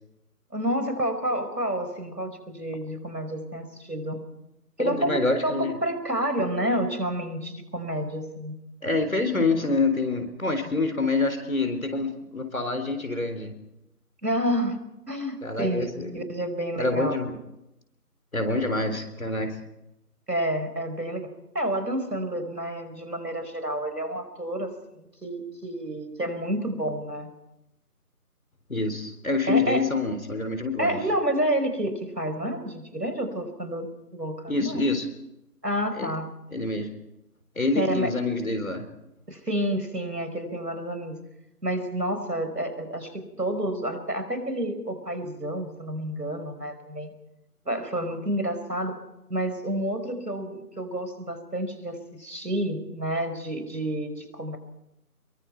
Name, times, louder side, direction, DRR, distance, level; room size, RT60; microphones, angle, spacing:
voice 1, 0.5-4.2 4.8-5.2 5.4-8.6 14.2-14.8 15.1-17.2 20.3-21.3 21.5-27.3 29.5-29.8 30.8-34.9 35.6-36.3 37.7-38.1 39.3-41.2 41.6-47.1 47.6-49.0 49.3-54.6, right 1 dB, 90° right, 8 dB, 5.0 m, -29 dB
voice 2, 4.8-5.7 8.8-13.6 15.4-16.1 16.8-17.4 18.3-19.6 28.7-31.0 34.5-35.1 36.0-36.1 36.5-36.9 37.6-38.8, left 3 dB, 60° left, 7 dB, 3.8 m, -26 dB
26.0 x 22.5 x 4.6 m, 0.88 s
figure-of-eight pair, 165°, 47 cm